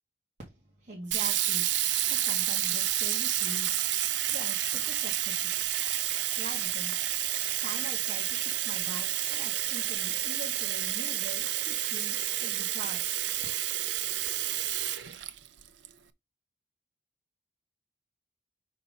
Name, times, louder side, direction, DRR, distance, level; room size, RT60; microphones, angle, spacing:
voice 1, 0.8-3.8 4.3-5.6 6.3-13.0, right 2 dB, 40° right, 1.7 m, -44 dB
Sink (filling or washing), 1.1-15.9, right 12 dB, 85° right, 0.6 m, -30 dB
5.1 x 4.3 x 5.3 m
head